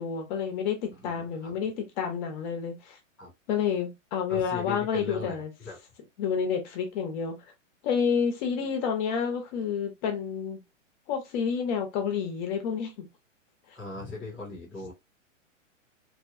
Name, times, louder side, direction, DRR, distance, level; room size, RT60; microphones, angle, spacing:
voice 1, 0.0-3.0 3.5-5.5 6.2-7.4 7.8-10.6 11.1-13.1, left 7 dB, 35° left, 1.0 m, -29 dB
voice 2, 1.2-1.6 3.2-3.3 4.3-5.8 13.7-14.9, left 3 dB, ahead, 0.3 m, -39 dB
2.9 x 2.3 x 2.7 m
hypercardioid pair, 140°, 38 cm